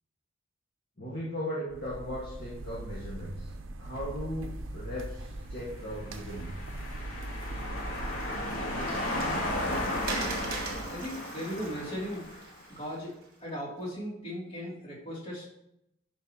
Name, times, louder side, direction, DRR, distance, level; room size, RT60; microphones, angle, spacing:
voice 1, 1.0-3.5 3.8-6.5, equal, 50° left, -6 dB, 1.7 m, -37 dB
sound 1, 1.7-11.1, right 2 dB, 70° right, 0.6 m, -41 dB
sound 2, 5.9-12.6, left 1 dB, 90° left, 2.5 m, -35 dB
Water, 7.9-13.2, right 4 dB, 45° right, 1.2 m, -42 dB
voice 2, 10.9-12.2 12.7-13.1 13.4-15.5, equal, 30° left, -5 dB, 2.8 m, -37 dB
9.2 x 5.7 x 2.9 m, 0.79 s
head